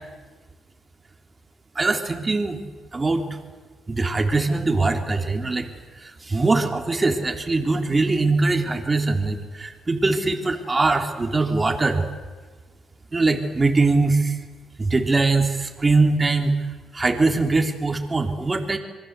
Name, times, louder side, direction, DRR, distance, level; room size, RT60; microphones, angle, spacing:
voice 1, 1.7-2.6 2.9-3.2 3.9-5.7 6.0-12.0 13.1-14.4 14.8-16.5 16.9-18.8, right 3 dB, 25° right, 4 dB, 3.3 m, -22 dB
26.5 x 22.5 x 8.2 m, 1.4 s
cardioid pair, 90°, 0 cm